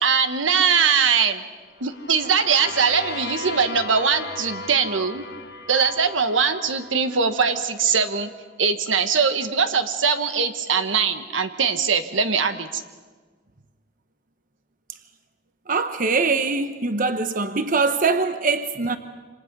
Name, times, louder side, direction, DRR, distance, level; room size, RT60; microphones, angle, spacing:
voice 1, 0.0-1.4 1.8-5.3 5.7-8.3 8.6-12.8, right 6 dB, 85° right, 1.4 m, -21 dB
sound 1, 1.8-7.6, left 3 dB, 60° left, 1.4 m, -36 dB
voice 2, 15.7-19.0, right 4 dB, 45° right, 1.0 m, -22 dB
27.5 x 26.5 x 5.4 m
head